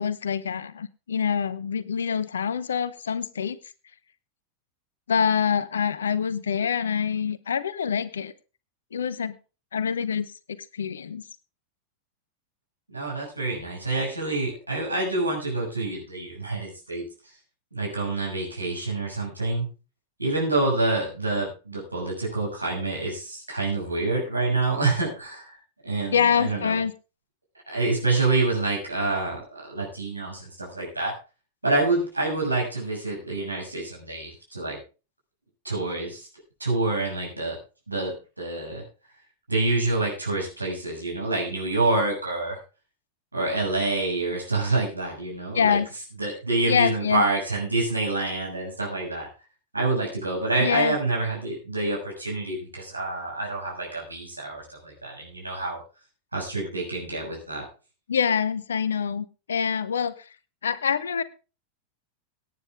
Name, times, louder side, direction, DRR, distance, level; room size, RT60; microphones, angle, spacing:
voice 1, 0.0-3.6 5.1-8.3 8.9-9.3 9.7-11.2 26.1-26.9 45.5-45.9 46.7-47.2 50.6-51.0 58.1-60.3 60.6-61.2, left 7 dB, 70° left, 17 dB, 1.2 m, -25 dB
voice 2, 12.9-17.0 17.7-19.7 20.2-25.6 25.8-26.8 27.7-31.1 31.6-34.8 35.6-36.3 36.6-37.6 37.9-38.8 39.5-42.6 43.3-45.8 46.2-49.3 49.7-55.8 56.3-57.6, right 2 dB, 85° right, -2 dB, 6.6 m, -27 dB
18.0 x 9.8 x 3.6 m, 0.32 s
figure-of-eight pair, 90°, 0 cm